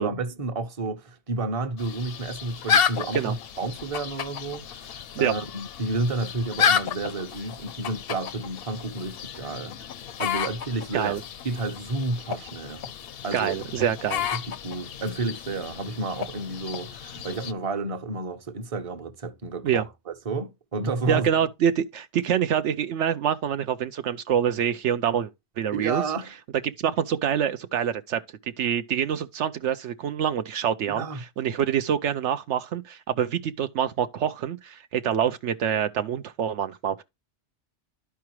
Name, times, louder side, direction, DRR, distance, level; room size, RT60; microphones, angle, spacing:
voice 1, 0.0-9.8 10.2-11.2 11.4-12.9 13.2-13.5 14.3-21.3 25.7-26.4 30.9-31.2, right 3 dB, 30° right, 0.9 m, -31 dB
sound 1, 1.8-17.5, left 7 dB, 60° left, 0.7 m, -31 dB
voice 2, 13.3-14.3 19.6-19.8 21.1-25.3 25.6-26.0 26.8-28.2 28.6-37.0, right 9 dB, 75° right, 0.9 m, -26 dB
12.5 x 4.8 x 3.0 m
omnidirectional pair, 1.2 m